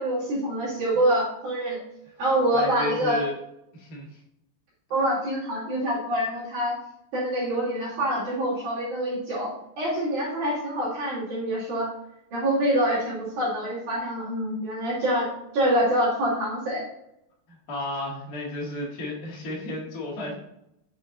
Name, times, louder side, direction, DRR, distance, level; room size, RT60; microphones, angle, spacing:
voice 1, 0.0-1.8 2.2-3.2 4.9-6.8 7.1-9.5 9.8-11.9 12.3-15.3 15.5-16.8, right 1 dB, 50° right, -8 dB, 3.4 m, -25 dB
voice 2, 2.5-3.3 3.7-4.2 17.5-20.3, left 1 dB, 80° left, -4 dB, 0.8 m, -33 dB
7.0 x 4.9 x 3.9 m, 0.80 s
omnidirectional pair, 5.1 m